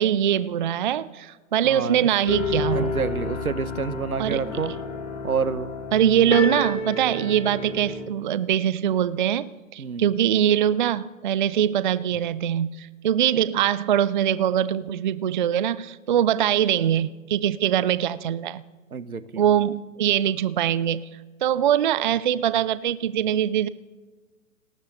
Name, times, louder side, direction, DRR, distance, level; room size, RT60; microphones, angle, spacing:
voice 1, 0.0-2.9 4.2-4.4 5.9-18.6 19.4-21.0 21.4-23.7, right 10 dB, 35° right, 17 dB, 0.4 m, -22 dB
voice 2, 1.6-2.1 2.7-4.7 5.2-5.7 9.8-10.1 18.9-19.4, right 6 dB, 80° right, 15 dB, 1.2 m, -28 dB
sound 1, 2.3-8.0, left 3 dB, 60° left, 4.4 m, -30 dB
29.5 x 12.5 x 3.9 m, 1.3 s
figure-of-eight pair, 115°, 43 cm